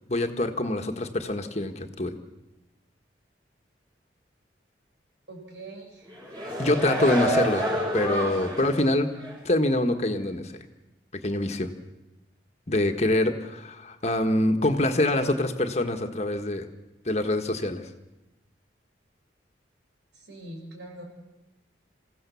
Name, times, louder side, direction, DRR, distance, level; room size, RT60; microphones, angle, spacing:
voice 1, 0.1-2.2 6.6-9.1 9.4-10.6 11.2-11.7 12.7-16.7 17.0-17.9, left 1 dB, 35° left, 6 dB, 1.4 m, -25 dB
voice 2, 5.3-6.1 20.1-21.0, right 2 dB, 75° right, 2 dB, 5.6 m, -43 dB
sound 1, 6.1-8.8 9.2-9.4, equal, 20° right, 5.0 m, -28 dB
28.0 x 16.0 x 7.0 m, 1.0 s
head